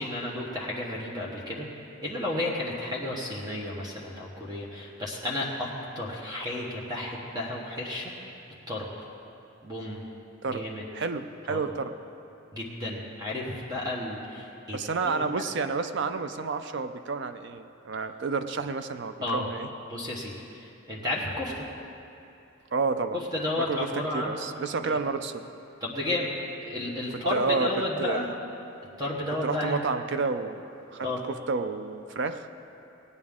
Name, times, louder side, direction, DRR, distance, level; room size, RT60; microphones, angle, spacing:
voice 1, 0.0-1.7 2.0-8.1 8.7-8.9 9.6-10.0 10.5-10.8 11.5-11.6 12.5-15.5 19.2-19.5 19.9-21.6 23.1-24.4 24.8-25.0 25.8-26.3 26.6-28.3 29.0-29.8 31.0-31.2, left 1 dB, 20° right, -4 dB, 1.1 m, -32 dB
voice 2, 10.9-11.9 14.7-19.7 22.7-23.2 23.6-25.5 27.3-27.7 28.0-28.3 29.4-32.5, right 4 dB, 55° right, 10 dB, 0.4 m, -30 dB
18.0 x 9.7 x 3.6 m, 2.7 s
head